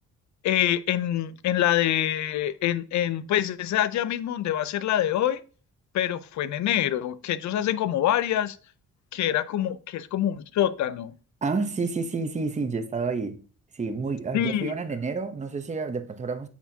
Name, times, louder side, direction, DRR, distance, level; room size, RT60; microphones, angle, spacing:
voice 1, 0.4-5.4 5.9-8.6 9.1-11.1 14.3-14.7, left 11 dB, 65° left, 0.6 m, -25 dB
voice 2, 11.4-13.4 13.7-16.5, right 4 dB, 25° right, 0.9 m, -29 dB
8.7 x 5.8 x 2.8 m
cardioid pair, 90°, 30 cm